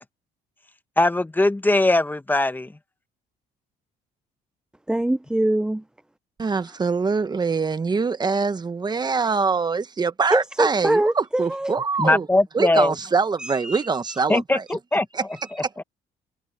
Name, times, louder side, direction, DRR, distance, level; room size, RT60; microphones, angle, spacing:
voice 1, 1.0-2.7 12.0-12.9 14.3-15.1 15.8-15.9, left 2 dB, 10° left, 1.3 m, -20 dB
voice 2, 4.9-5.8 10.3-11.8 13.4-14.4 15.3-15.6, right 1 dB, 5° right, 0.5 m, -24 dB
voice 3, 6.4-12.3 12.5-14.6 15.1-15.2, right 4 dB, 25° right, 1.2 m, -24 dB
cardioid pair, 110°, 17 cm